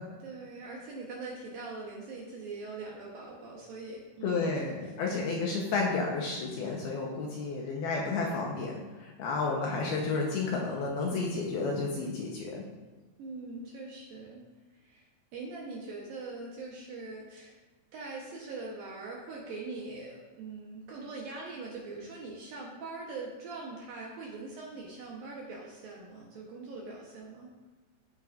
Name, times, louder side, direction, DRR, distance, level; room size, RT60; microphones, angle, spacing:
voice 1, 0.2-4.5 4.8-4.9 13.2-14.4 14.7-15.0 15.3-17.6 17.9-27.5, right 3 dB, 70° right, -3 dB, 2.3 m, -42 dB
voice 2, 4.2-8.7 9.0-12.6, left 4 dB, 70° left, -2 dB, 2.5 m, -31 dB
14.0 x 8.8 x 2.6 m, 1.3 s
omnidirectional pair, 5.4 m